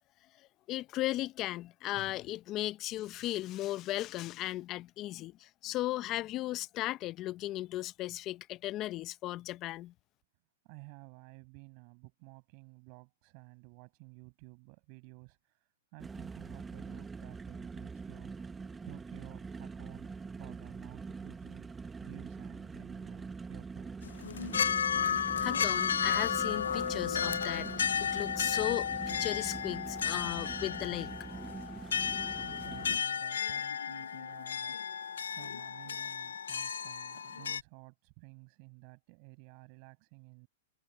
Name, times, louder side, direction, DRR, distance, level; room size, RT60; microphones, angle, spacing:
voice 1, 0.7-9.9 24.6-24.7 25.4-31.4, left 15 dB, 35° left, 0.7 m, -36 dB
voice 2, 10.6-18.3 18.9-21.7 22.0-24.0 32.4-35.0 35.3-40.5, right 40 dB or more, 45° right, 7.1 m, -53 dB
sound 1, 16.0-33.0, right 4 dB, 10° right, 1.3 m, -44 dB
sound 2, 24.0-37.6, left 7 dB, 90° left, 0.6 m, -33 dB
hypercardioid pair, 135°, 0 cm